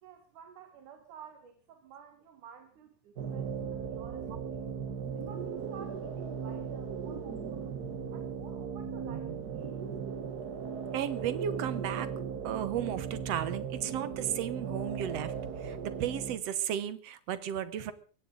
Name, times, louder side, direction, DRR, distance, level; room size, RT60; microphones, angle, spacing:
voice 1, 0.0-4.6 5.1-7.7 8.1-9.8, right 6 dB, 90° right, 6 dB, 3.2 m, -52 dB
sound 1, 3.2-16.4, right 6 dB, 45° right, 1.3 m, -37 dB
voice 2, 10.9-12.1 12.4-15.3 15.6-17.9, right 10 dB, 65° right, 14 dB, 2.0 m, -34 dB
22.0 x 17.0 x 3.9 m, 0.39 s
omnidirectional pair, 3.4 m